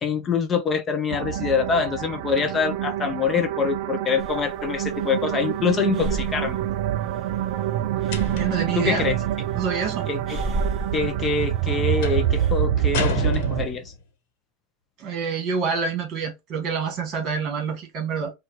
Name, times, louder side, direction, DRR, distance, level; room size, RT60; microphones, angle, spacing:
voice 1, 0.0-6.6 8.8-9.2 10.1-10.4 10.9-13.9, left 5 dB, 20° left, 0.4 m, -25 dB
sound 1, 1.1-13.7, right 11 dB, 65° right, 0.3 m, -26 dB
Breathing, 4.2-12.7, right 1 dB, 15° right, 1.3 m, -35 dB
sound 2, 8.1-8.7 12.0-12.3 12.9-14.0, left 5 dB, 70° left, 1.0 m, -30 dB
voice 2, 8.3-9.1 9.5-10.1 15.0-18.3, right 6 dB, 40° right, 1.6 m, -27 dB
4.4 x 2.2 x 2.9 m
supercardioid pair, 150°, 0 cm